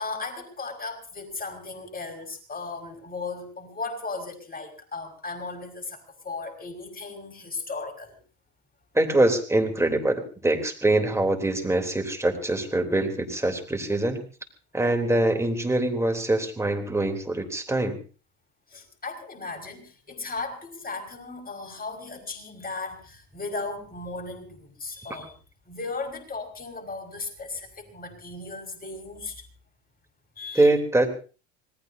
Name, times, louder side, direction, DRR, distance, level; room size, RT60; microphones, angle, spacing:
voice 1, 0.0-8.2 18.7-25.3 25.7-29.4 30.4-30.7, left 3 dB, 25° left, 3 dB, 5.5 m, -36 dB
voice 2, 8.9-14.2 14.7-18.0 25.1-25.2 30.6-31.1, right 2 dB, 5° right, 4 dB, 3.5 m, -24 dB
26.5 x 19.0 x 2.8 m, 0.36 s
hypercardioid pair, 70°, 36 cm